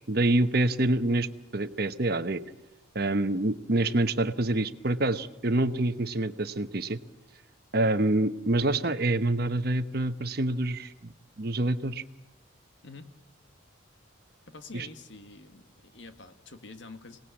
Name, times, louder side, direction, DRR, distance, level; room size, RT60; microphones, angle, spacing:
voice 1, 0.1-1.3 1.5-2.4 2.9-7.0 7.7-10.9 11.4-12.0 14.7-14.9, right 2 dB, 50° right, 11 dB, 1.0 m, -26 dB
voice 2, 14.5-17.2, left 3 dB, 65° left, 7 dB, 1.9 m, -47 dB
26.0 x 19.0 x 8.5 m, 0.94 s
head